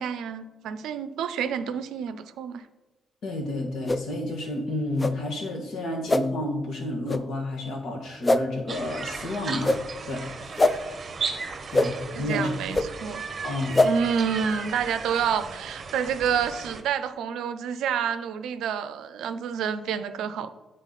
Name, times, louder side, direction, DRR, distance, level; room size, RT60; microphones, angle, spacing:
voice 1, 0.0-2.6 12.1-13.2 13.8-20.5, right 7 dB, 80° right, 11 dB, 0.4 m, -28 dB
voice 2, 3.2-9.8 10.1-11.0 11.7-12.5 13.4-13.8, left 1 dB, 70° left, 0 dB, 1.6 m, -30 dB
sound 1, 3.9-4.0 5.0-5.1 6.1-6.2 7.1-7.2 8.2-8.4 9.6-9.8 10.6-10.7 11.7-11.9 12.7-12.9 13.7-13.9, left 2 dB, 20° left, 0.4 m, -21 dB
sound 2, 8.7-16.8, right 4 dB, 40° right, 0.8 m, -36 dB
8.1 x 4.2 x 4.0 m, 1.1 s
cardioid pair, 90°, 0 cm